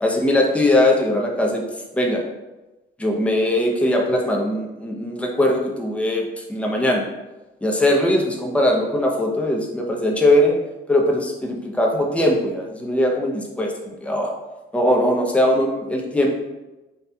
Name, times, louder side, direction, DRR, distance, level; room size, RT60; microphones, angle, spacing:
voice 1, 0.0-1.6 1.9-2.2 3.0-7.0 7.6-10.5 10.9-14.3 14.7-16.4, left 1 dB, 5° left, -1 dB, 0.7 m, -20 dB
4.2 x 2.4 x 3.4 m, 1.1 s
cardioid pair, 90°, 20 cm